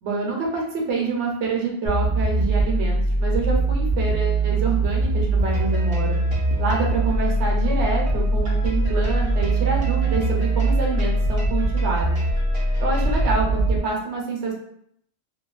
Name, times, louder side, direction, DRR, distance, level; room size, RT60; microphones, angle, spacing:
voice 1, 0.0-6.2 6.6-12.2 12.8-14.5, right 4 dB, 85° right, -1 dB, 1.0 m, -27 dB
sound 1, 1.9-13.8, right 2 dB, 55° left, 0.7 m, -22 dB
sound 2, 5.4-11.3, left 4 dB, 75° left, 1.1 m, -47 dB
sound 3, 5.5-13.9, right 3 dB, 40° right, 0.5 m, -40 dB
2.7 x 2.2 x 2.4 m, 0.70 s
omnidirectional pair, 1.1 m